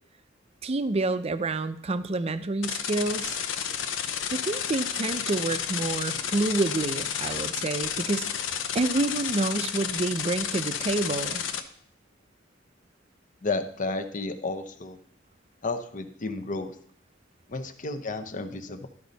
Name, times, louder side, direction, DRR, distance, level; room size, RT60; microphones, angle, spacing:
voice 1, 0.6-3.4 4.3-8.3 8.7-11.4, right 2 dB, 35° right, 12 dB, 0.5 m, -28 dB
sound 1, 2.6-11.6, left 8 dB, 85° left, 0.7 m, -31 dB
voice 2, 13.4-15.0 15.6-16.8 17.5-18.9, left 3 dB, 45° left, 8 dB, 0.7 m, -32 dB
12.5 x 5.2 x 4.0 m, 0.64 s
head